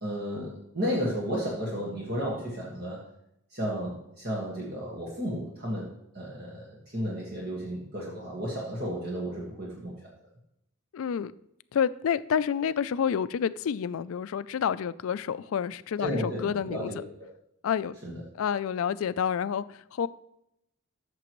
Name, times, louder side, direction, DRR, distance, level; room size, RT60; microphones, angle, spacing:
voice 1, 0.0-3.0 3.5-9.9 16.0-17.1 18.0-18.2, equal, 45° right, -4 dB, 1.6 m, -33 dB
voice 2, 10.9-11.3 11.7-16.9 17.6-18.0 18.3-20.1, left 7 dB, 70° left, 17 dB, 0.3 m, -29 dB
13.5 x 6.8 x 3.1 m, 0.81 s
head